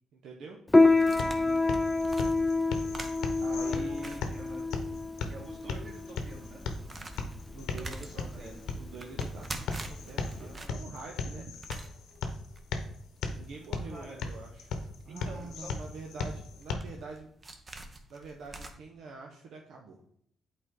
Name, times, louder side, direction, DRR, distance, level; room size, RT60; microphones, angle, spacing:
voice 1, 0.1-0.6 3.4-4.3 7.5-9.5 9.8-11.5 13.3-17.3 18.1-20.1, right 3 dB, 75° right, 0 dB, 0.9 m, -45 dB
sound 1, 0.7-16.7, left 4 dB, 80° left, 0.8 m, -38 dB
Piano, 0.7-10.7, left 3 dB, 15° left, 0.3 m, -28 dB
sound 2, 0.9-5.0 5.3-5.4 5.9-18.7, right 2 dB, 30° right, 0.9 m, -46 dB
voice 2, 1.2-1.6 3.5-4.6 5.3-6.6 7.8-8.6 10.0-10.8 13.9-14.2 15.0-15.7, right 1 dB, 50° right, -2 dB, 2.7 m, -48 dB
8.0 x 4.2 x 3.8 m, 0.68 s
cardioid pair, 90°, 0 cm